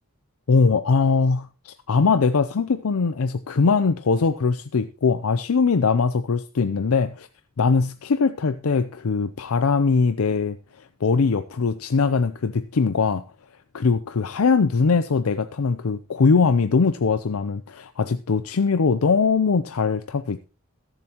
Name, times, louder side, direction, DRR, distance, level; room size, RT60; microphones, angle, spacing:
voice 1, 0.5-7.3 7.6-10.6 11.0-13.2 13.7-20.5, left 4 dB, 70° left, 11 dB, 0.5 m, -21 dB
21.0 x 7.4 x 3.0 m, 0.31 s
head